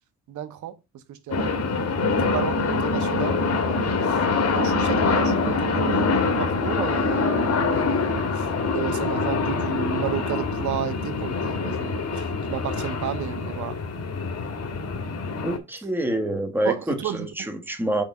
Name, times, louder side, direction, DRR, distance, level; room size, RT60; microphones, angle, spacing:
voice 1, 0.3-0.7 1.1-1.6 2.0-4.2 4.5-8.5 8.7-13.7 16.6-17.6, right 10 dB, 75° right, 1.1 m, -33 dB
sound 1, 1.3-15.6, left 4 dB, 55° left, 1.7 m, -24 dB
voice 2, 15.4-18.0, right 1 dB, 5° right, 1.3 m, -27 dB
5.5 x 3.6 x 5.3 m
cardioid pair, 90°, 30 cm